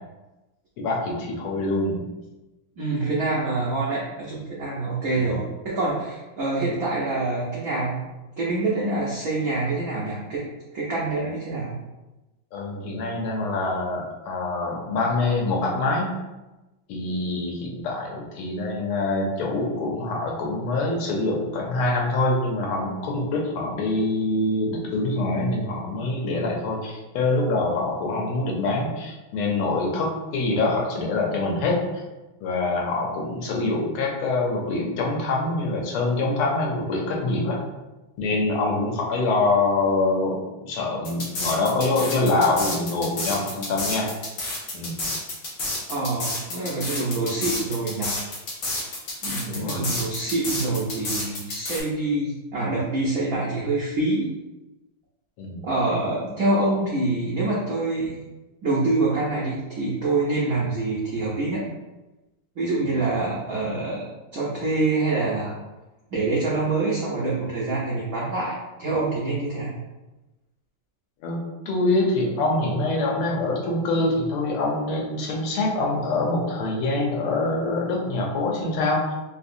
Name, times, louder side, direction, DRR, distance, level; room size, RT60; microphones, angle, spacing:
voice 1, 0.8-2.0 5.1-5.4 12.5-16.1 16.9-32.0 32.4-37.6 38.2-44.1 44.7-45.0 49.5-49.8 55.4-55.6 71.2-71.4 71.7-79.1, left 2 dB, 90° left, -1 dB, 1.6 m, -25 dB
voice 2, 2.8-8.0 8.4-10.4 10.7-11.8 45.9-48.1 49.2-54.4 55.6-58.2 58.6-61.6 62.6-64.1 64.3-65.6 66.1-69.7, right 2 dB, 80° right, -6 dB, 0.7 m, -26 dB
sound 1, 41.0-51.8, left 2 dB, 60° left, 1.1 m, -30 dB
3.6 x 2.7 x 2.5 m, 1.1 s
omnidirectional pair, 2.4 m